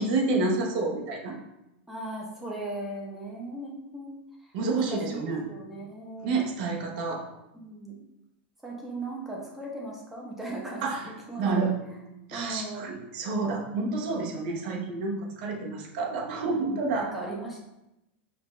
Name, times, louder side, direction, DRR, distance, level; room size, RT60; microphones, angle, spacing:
voice 1, 0.0-1.4 4.5-5.4 6.2-7.2 10.8-11.1 11.4-11.8 12.3-17.1, right 3 dB, 55° right, 0 dB, 0.8 m, -29 dB
voice 2, 1.9-4.2 4.7-6.3 7.5-7.9 8.6-11.7 12.3-13.0 16.5-17.6, right 2 dB, 5° right, -4 dB, 0.8 m, -38 dB
5.0 x 2.4 x 3.1 m, 0.89 s
supercardioid pair, 160°, 6 cm